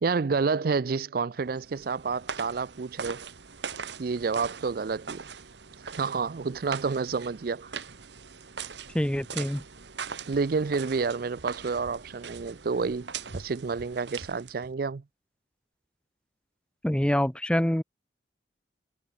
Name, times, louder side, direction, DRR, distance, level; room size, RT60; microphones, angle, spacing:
voice 1, 0.0-3.2 4.0-5.3 6.0-7.7 10.3-15.0, right 4 dB, 50° right, 0.4 m, -29 dB
sound 1, 1.4-14.7, right 6 dB, 70° right, 1.3 m, -41 dB
voice 2, 8.9-9.6 16.8-17.8, equal, 5° left, 0.5 m, -25 dB
head